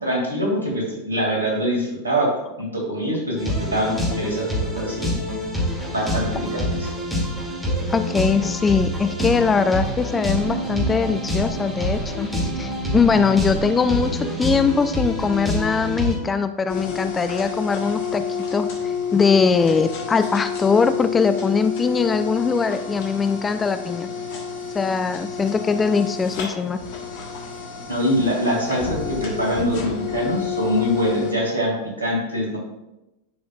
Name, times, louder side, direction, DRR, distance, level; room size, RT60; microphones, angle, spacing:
voice 1, 0.0-2.3 2.6-5.1 5.9-6.9 27.9-32.6, equal, 75° right, -1 dB, 2.3 m, -24 dB
sound 1, 3.4-16.2, equal, 5° right, 2.5 m, -26 dB
voice 2, 7.9-24.1 24.7-26.8, left 5 dB, 15° left, 10 dB, 0.4 m, -21 dB
sound 2, 16.7-31.3, left 6 dB, 50° left, 1.3 m, -29 dB
11.0 x 5.1 x 2.4 m, 0.96 s
figure-of-eight pair, 90°, 0 cm